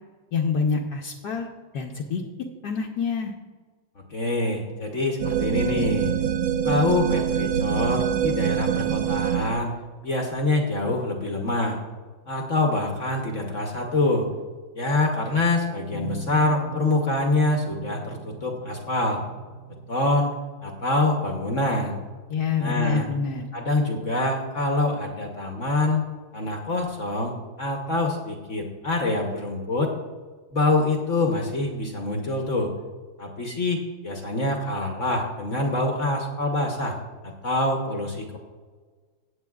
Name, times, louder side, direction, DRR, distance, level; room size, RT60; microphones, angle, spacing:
voice 1, 0.3-1.5 1.7-2.2 2.6-3.3 22.3-23.5, left 5 dB, 70° left, 0 dB, 1.3 m, -26 dB
voice 2, 4.1-6.1 6.6-9.7 10.0-11.8 12.3-14.3 14.7-19.2 19.9-20.3 20.6-22.0 22.6-23.1 23.5-26.0 26.3-29.9 30.5-32.7 33.2-37.0 37.4-38.4, left 2 dB, 50° left, 1 dB, 1.1 m, -25 dB
sound 1, 5.2-9.6, right 9 dB, 65° right, 0.9 m, -25 dB
sound 2, 15.9-28.8, right 2 dB, 50° right, 1.9 m, -44 dB
16.0 x 8.5 x 2.4 m, 1.5 s
omnidirectional pair, 2.1 m